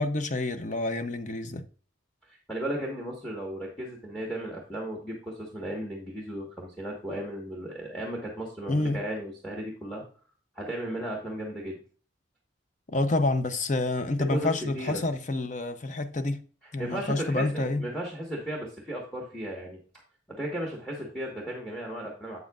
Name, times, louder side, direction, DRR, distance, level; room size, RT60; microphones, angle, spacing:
voice 1, 0.0-1.6 8.7-9.0 12.9-16.4 16.7-17.8, left 2 dB, 40° left, 0.6 m, -28 dB
voice 2, 2.3-10.0 10.6-11.8 14.3-15.0 16.8-19.8 20.3-22.4, right 1 dB, 5° left, 1.3 m, -35 dB
8.0 x 7.7 x 2.4 m
head